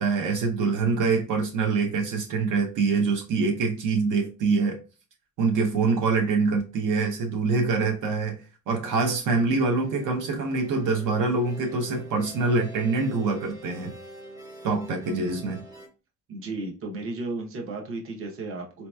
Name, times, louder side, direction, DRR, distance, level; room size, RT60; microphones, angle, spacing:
voice 1, 0.0-4.8 5.4-13.9 14.6-15.6, right 4 dB, 75° right, 0.8 m, -25 dB
sound 1, 9.7-15.9, right 1 dB, 10° right, 0.6 m, -44 dB
voice 2, 16.3-18.9, right 2 dB, 45° right, 0.8 m, -34 dB
4.2 x 2.9 x 2.2 m
cardioid pair, 155°, 31 cm